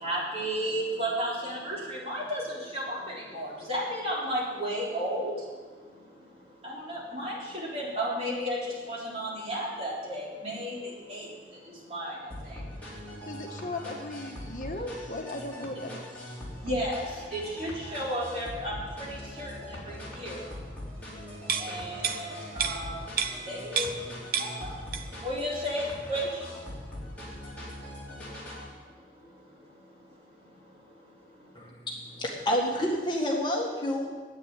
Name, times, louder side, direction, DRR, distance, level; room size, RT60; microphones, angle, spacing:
voice 1, 0.0-2.4 2.7-3.0 3.3-5.3 6.6-7.3 7.7-8.6 8.9-10.8 11.1-11.2 11.9-12.1 16.6-17.0 17.3-18.7 19.4-19.5 20.2-20.3 21.6-22.3 22.6-23.0 23.5-24.0 25.2-25.8 26.1-26.2, equal, 35° right, -5 dB, 4.0 m, -32 dB
sound 1, 12.3-28.7, left 1 dB, 10° left, 3.7 m, -42 dB
voice 2, 13.2-16.2, left 2 dB, 45° left, 2 dB, 1.3 m, -37 dB
sound 2, 21.4-24.1 24.3-25.3 25.6-25.8, right 7 dB, 55° right, 0.9 m, -31 dB
voice 3, 31.6-34.1, equal, 25° left, -1 dB, 1.8 m, -29 dB
10.5 x 8.9 x 9.8 m, 1.4 s
head